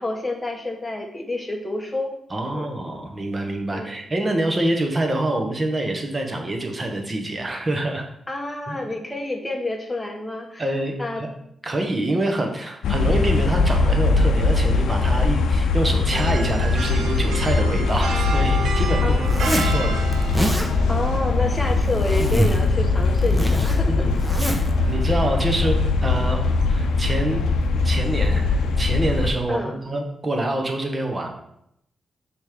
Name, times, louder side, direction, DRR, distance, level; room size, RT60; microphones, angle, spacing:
voice 1, 0.0-2.1 2.5-2.7 3.7-3.9 8.3-10.7 11.0-11.2 19.0-19.6 20.9-23.9 25.6-25.8 29.5-29.8, left 2 dB, 15° left, 1 dB, 1.2 m, -29 dB
voice 2, 2.3-8.1 8.7-9.0 10.6-11.3 11.6-20.0 23.9-24.1 24.5-25.8 26.0-27.4 27.8-31.3, right 1 dB, 30° right, 3 dB, 1.1 m, -26 dB
sound 1, 12.8-29.3, left 3 dB, 85° left, 0.5 m, -21 dB
sound 2, 16.1-26.4, right 4 dB, 85° right, 0.6 m, -33 dB
Zipper (clothing), 19.2-19.8 20.1-20.7 21.5-22.7 23.0-24.7, right 1 dB, 5° right, 0.8 m, -26 dB
6.2 x 3.2 x 5.0 m, 0.76 s
cardioid pair, 80°, 0 cm